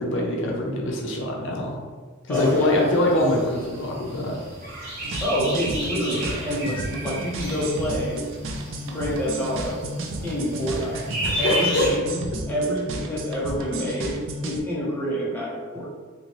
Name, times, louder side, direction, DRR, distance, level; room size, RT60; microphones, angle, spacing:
voice 1, 0.0-1.7 2.3-4.4 11.2-12.0, left 1 dB, 60° left, -1 dB, 0.5 m, -24 dB
voice 2, 2.3-2.7 5.2-8.2 8.9-9.9 10.2-11.0 11.4-15.9, equal, 10° left, -6 dB, 0.6 m, -27 dB
sound 1, 2.3-11.9, equal, 45° right, 1.1 m, -33 dB
sound 2, 5.0-14.6, right 2 dB, 60° right, 0.4 m, -32 dB
2.9 x 2.7 x 3.0 m, 1.5 s
head